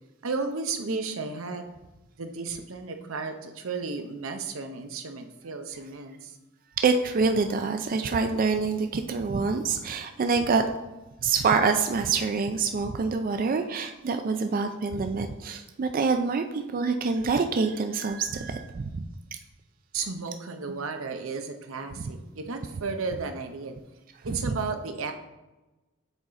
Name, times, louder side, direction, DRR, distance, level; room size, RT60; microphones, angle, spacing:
voice 1, 0.2-1.7 2.2-6.4 19.9-23.8 24.2-25.1, right 4 dB, 85° right, 6 dB, 0.7 m, -33 dB
voice 2, 6.8-10.7 11.2-19.1 22.0-22.1 24.4-24.6, right 4 dB, 45° right, 6 dB, 0.4 m, -26 dB
7.1 x 3.9 x 4.2 m, 1.1 s
head